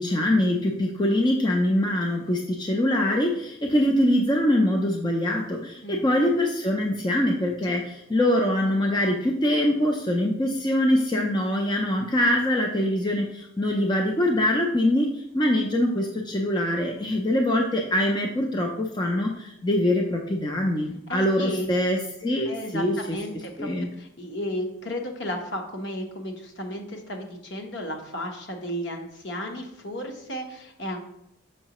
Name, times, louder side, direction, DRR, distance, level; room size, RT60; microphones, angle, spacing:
voice 1, 0.0-23.2 23.6-23.9, left 1 dB, 20° left, 1 dB, 0.4 m, -23 dB
voice 2, 21.1-21.7 22.5-31.0, equal, 55° left, 3 dB, 1.0 m, -34 dB
6.4 x 5.6 x 3.0 m, 0.80 s
head